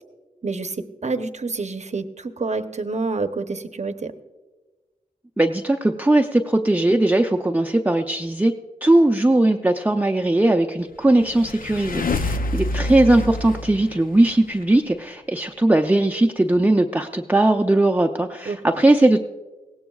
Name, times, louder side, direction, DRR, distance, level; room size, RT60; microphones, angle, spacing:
voice 1, 0.4-0.8 1.0-4.1 18.5-18.6, right 3 dB, 50° right, 9 dB, 0.8 m, -27 dB
voice 2, 5.4-8.5 8.8-19.2, right 1 dB, 10° right, 4 dB, 0.5 m, -19 dB
sound 1, 11.0-14.6, left 2 dB, 75° left, 0.6 m, -27 dB
19.5 x 16.5 x 2.3 m, 1.2 s
wide cardioid pair, 70°, 15 cm